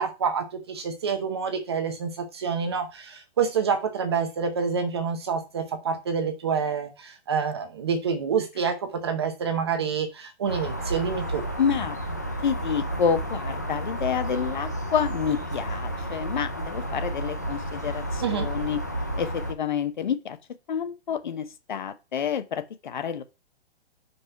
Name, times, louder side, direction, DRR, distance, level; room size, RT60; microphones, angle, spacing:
voice 1, 0.0-11.4 18.2-18.5, right 6 dB, 25° right, 0.7 m, -27 dB
sound 1, 10.5-19.5, right 1 dB, 15° left, 0.4 m, -31 dB
voice 2, 11.6-12.0 12.4-18.8 19.2-20.4 20.7-23.2, left 7 dB, 45° left, 0.8 m, -28 dB
5.5 x 5.3 x 5.6 m
hypercardioid pair, 175°, 33 cm